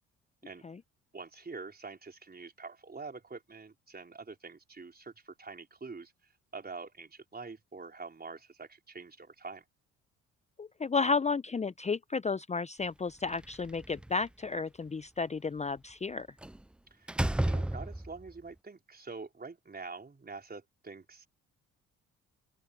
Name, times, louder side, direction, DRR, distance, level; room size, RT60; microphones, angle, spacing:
voice 1, 1.1-9.6 16.9-21.3, right 4 dB, 25° right, 4.0 m, -46 dB
voice 2, 10.6-16.3, left 4 dB, 20° left, 0.8 m, -32 dB
Slam, 13.2-14.3 16.4-16.6 17.1-18.3, right 1 dB, 5° right, 0.4 m, -32 dB
open air
hypercardioid pair, 50°, 36 cm